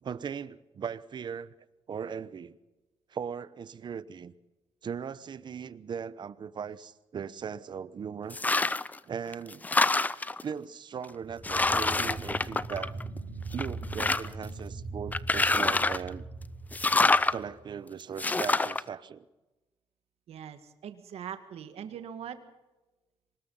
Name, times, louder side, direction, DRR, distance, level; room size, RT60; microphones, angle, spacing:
voice 1, 0.0-1.5 1.9-2.6 3.1-4.3 4.8-8.4 9.1-9.7 10.4-13.0 13.5-16.2 17.3-19.2, right 7 dB, 50° right, 0.9 m, -38 dB
sound 1, 8.3-9.0 9.3-10.4 11.0-11.1 11.4-13.2 13.5-14.5 15.1-16.1 16.7-17.4 18.2-18.8, left 3 dB, 15° left, 0.6 m, -26 dB
sound 2, 11.2-17.7, right 3 dB, 25° right, 4.9 m, -40 dB
voice 2, 20.3-22.4, right 8 dB, 85° right, 1.7 m, -41 dB
24.5 x 20.5 x 5.6 m
cardioid pair, 130°, 10 cm